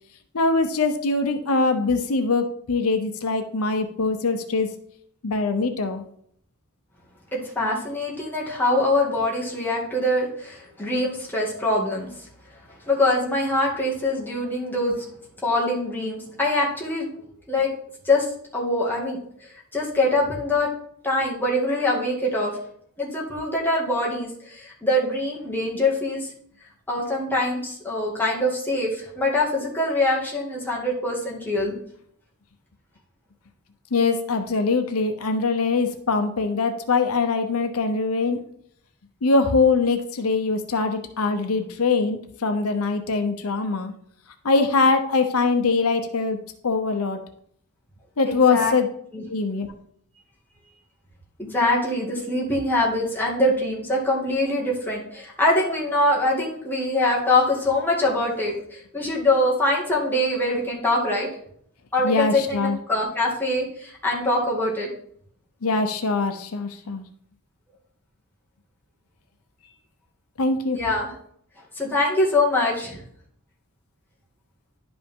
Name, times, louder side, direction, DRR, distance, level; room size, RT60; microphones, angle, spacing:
voice 1, 0.3-4.7 5.2-6.0 33.9-38.4 39.2-43.9 44.4-46.4 46.6-47.2 48.2-48.9 49.3-49.7 62.0-62.8 65.6-67.0 70.4-70.8, left 3 dB, 80° left, 7 dB, 0.7 m, -22 dB
voice 2, 7.3-12.3 12.9-14.9 15.4-17.1 17.5-17.7 18.0-18.3 18.5-20.7 21.0-22.5 23.0-26.3 26.9-31.7 48.2-48.8 49.1-49.2 51.4-61.3 61.9-64.9 70.7-71.1 71.8-73.0, left 1 dB, 10° left, -4 dB, 2.0 m, -23 dB
11.0 x 5.2 x 3.6 m, 0.65 s
head